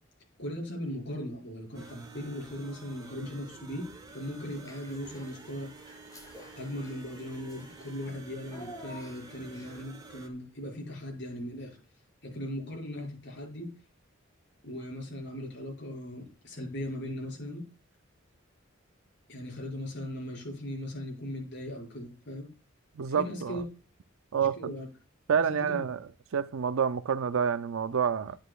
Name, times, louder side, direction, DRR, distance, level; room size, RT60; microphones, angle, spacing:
voice 1, 0.4-5.7 6.6-11.8 12.2-13.7 14.6-17.6 19.3-22.5 23.1-23.6 24.3-24.9 25.5-25.8, left 1 dB, 60° left, 5.7 m, -38 dB
sound 1, 1.7-10.3, right 3 dB, 20° right, 1.0 m, -50 dB
Child speech kid speaking / Bathtub (filling or washing), 4.5-5.4 5.8-10.0, equal, 15° left, 3.2 m, -50 dB
voice 2, 23.0-23.6 24.3-24.7 25.3-26.0 26.3-28.4, right 7 dB, 85° right, 0.5 m, -28 dB
10.0 x 9.9 x 2.4 m
head